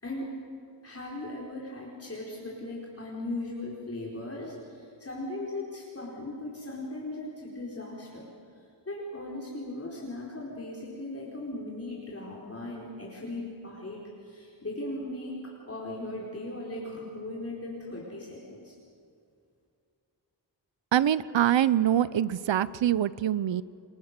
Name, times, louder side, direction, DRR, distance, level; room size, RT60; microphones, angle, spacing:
voice 1, 0.0-0.4 0.8-8.3 8.9-18.8, left 2 dB, 35° left, -4 dB, 4.3 m, -38 dB
voice 2, 20.9-23.6, right 11 dB, 90° right, 17 dB, 0.7 m, -24 dB
30.0 x 23.0 x 6.7 m, 2.4 s
wide cardioid pair, 125°, 43 cm